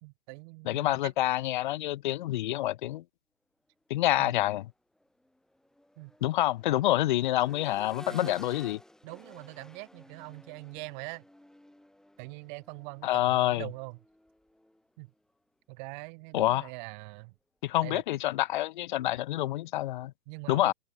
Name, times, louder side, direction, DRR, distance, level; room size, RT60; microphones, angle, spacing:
voice 1, 0.0-1.1 4.2-4.3 6.0-6.1 8.1-8.4 9.0-11.2 12.2-14.0 15.0-15.1 15.7-17.3 17.8-18.0 20.3-20.7, right 31 dB, 35° right, 2.2 m, -43 dB
voice 2, 0.7-3.0 3.9-4.7 6.2-8.8 13.0-13.6 16.3-16.6 17.6-20.1 20.5-20.7, left 15 dB, 35° left, 0.7 m, -27 dB
Accelerating revving vroom, 5.0-14.9 16.6-16.7, left 1 dB, ahead, 1.8 m, -52 dB
open air
figure-of-eight pair, 115°, 43 cm